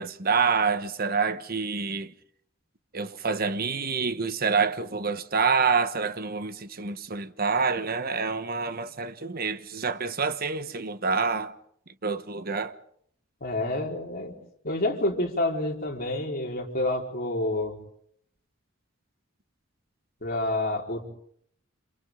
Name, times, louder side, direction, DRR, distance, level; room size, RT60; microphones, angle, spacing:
voice 1, 0.0-2.1 2.9-11.6 12.0-12.7, right 5 dB, 50° right, 1.2 m, -27 dB
voice 2, 13.4-14.3 14.6-17.8 20.2-21.0, left 1 dB, 50° left, 4.6 m, -28 dB
29.0 x 27.5 x 3.8 m
head